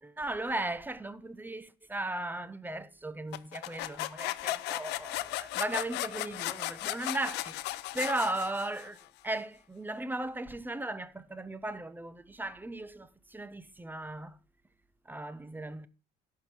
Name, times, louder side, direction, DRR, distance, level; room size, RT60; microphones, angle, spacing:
voice 1, 0.0-14.4 15.1-15.9, right 2 dB, 10° right, 0.7 m, -37 dB
sound 1, 3.3-9.0, left 17 dB, 90° left, 0.5 m, -36 dB
11.5 x 4.7 x 6.3 m
cardioid pair, 110°, 17 cm